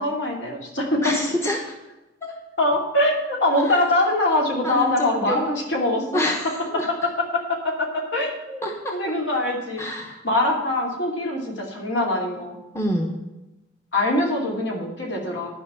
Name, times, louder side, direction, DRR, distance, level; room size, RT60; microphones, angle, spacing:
voice 1, 0.0-1.2 2.6-6.3 6.9-9.9 10.2-12.6 13.9-15.5, left 1 dB, 65° left, -1 dB, 2.6 m, -23 dB
voice 2, 1.0-1.6 2.2-2.3 3.6-3.8 4.6-5.5 6.1-6.9 8.6-8.9 9.8-10.2 12.7-13.2, left 1 dB, 15° left, 1 dB, 1.0 m, -27 dB
10.5 x 5.4 x 7.4 m, 1.0 s
head